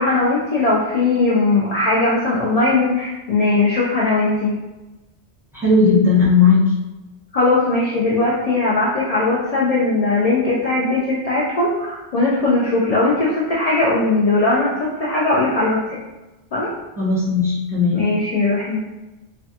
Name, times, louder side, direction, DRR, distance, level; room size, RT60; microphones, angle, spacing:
voice 1, 0.0-4.6 7.3-16.0 16.5-16.7 17.9-18.8, left 2 dB, 65° left, -6 dB, 0.4 m, -19 dB
voice 2, 5.6-6.6 17.0-18.1, left 4 dB, ahead, -9 dB, 0.8 m, -16 dB
2.4 x 2.2 x 2.6 m, 1.1 s
omnidirectional pair, 1.2 m